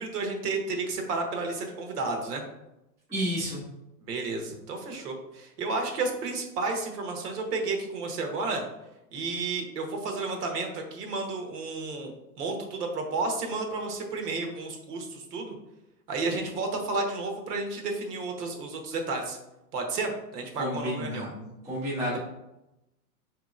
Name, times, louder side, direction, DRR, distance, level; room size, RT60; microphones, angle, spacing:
voice 1, 0.0-2.4 4.0-8.6 9.1-15.6 16.1-19.4 19.7-21.3, right 3 dB, 75° right, 3 dB, 1.1 m, -32 dB
voice 2, 3.1-3.6 20.6-22.2, equal, 5° right, -9 dB, 0.5 m, -31 dB
4.7 x 2.9 x 2.4 m, 0.91 s
hypercardioid pair, 155°, 47 cm